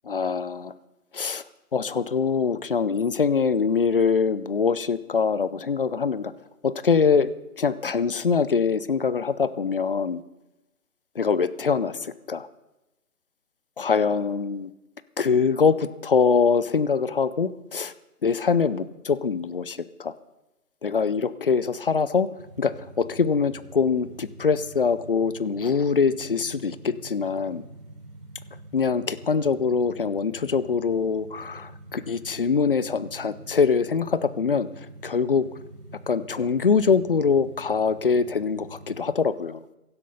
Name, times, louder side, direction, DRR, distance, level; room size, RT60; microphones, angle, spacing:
voice 1, 0.1-0.7 1.1-1.4 1.7-6.3 6.6-7.3 7.6-10.2 11.2-12.5 13.8-14.7 15.2-17.9 18.2-20.1 20.8-22.3 22.6-27.6 28.7-34.7 35.0-35.5 36.1-39.6, left 5 dB, 35° left, 16 dB, 0.6 m, -23 dB
sound 1, 22.4-39.0, right 2 dB, 90° right, 4.9 m, -45 dB
16.5 x 12.0 x 5.4 m, 0.98 s
figure-of-eight pair, 145°, 46 cm